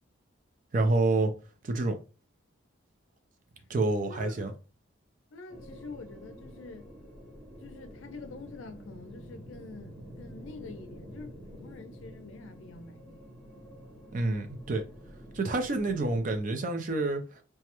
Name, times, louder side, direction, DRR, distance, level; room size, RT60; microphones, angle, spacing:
voice 1, 0.7-1.3 1.6-2.0 3.7-4.5 14.1-14.8 15.3-17.4, right 2 dB, 40° right, 0.4 m, -28 dB
voice 2, 5.3-6.9 7.6-13.3, left 3 dB, 80° left, 0.4 m, -46 dB
sound 1, 5.5-16.4, equal, 5° right, 0.7 m, -48 dB
2.3 x 2.1 x 2.9 m
head